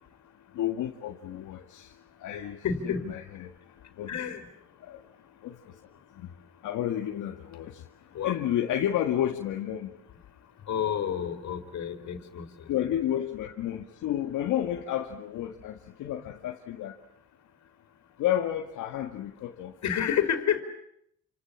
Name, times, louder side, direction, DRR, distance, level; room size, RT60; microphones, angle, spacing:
voice 1, 0.6-1.9 2.2-2.6 2.8-3.5 4.0-4.1 4.8-5.0 5.4-5.6 6.2-6.3 6.6-7.7 8.2-9.9 12.7-17.0 18.2-19.7, left 11 dB, 85° left, 2 dB, 2.0 m, -31 dB
voice 2, 2.6-3.1 4.1-4.5 8.1-8.3 10.7-12.5 19.8-20.6, left 8 dB, 65° left, 8 dB, 4.2 m, -29 dB
29.0 x 28.0 x 7.4 m, 0.75 s
cardioid pair, 90°, 30 cm